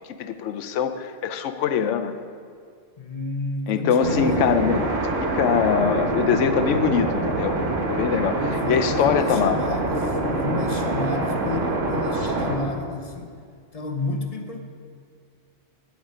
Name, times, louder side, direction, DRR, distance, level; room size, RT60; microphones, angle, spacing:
voice 1, 0.0-2.1 3.7-4.8 5.2-7.6 7.9-8.4 8.7-9.6, left 7 dB, 80° left, 9 dB, 1.0 m, -23 dB
voice 2, 3.0-4.5 8.4-13.3 13.7-14.6, left 2 dB, 35° left, 5 dB, 0.8 m, -31 dB
sound 1, 4.0-12.6, right 2 dB, 85° right, 1.6 m, -25 dB
10.0 x 8.1 x 4.9 m, 2.2 s
omnidirectional pair, 1.2 m